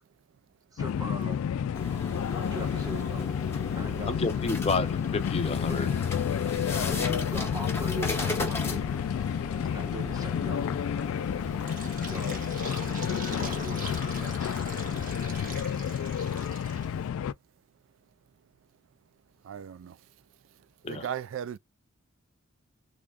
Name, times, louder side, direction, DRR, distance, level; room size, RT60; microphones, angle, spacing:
voice 1, 0.7-1.4 2.3-3.3 3.7-4.2 5.6-6.0 6.8-8.9 9.7-10.7 12.0-12.4 12.9-14.5, equal, 20° right, 1.1 m, -41 dB
sound 1, 0.8-17.3, left 8 dB, 85° left, 0.3 m, -30 dB
sound 2, 1.7-15.6, left 1 dB, 10° left, 1.1 m, -39 dB
voice 2, 4.1-5.9 20.8-21.1, left 3 dB, 30° left, 0.6 m, -30 dB
Fill (with liquid), 11.4-17.1, right 3 dB, 40° right, 1.2 m, -42 dB
voice 3, 19.4-20.1 20.6-21.6, right 9 dB, 65° right, 0.3 m, -37 dB
3.5 x 3.3 x 2.3 m
head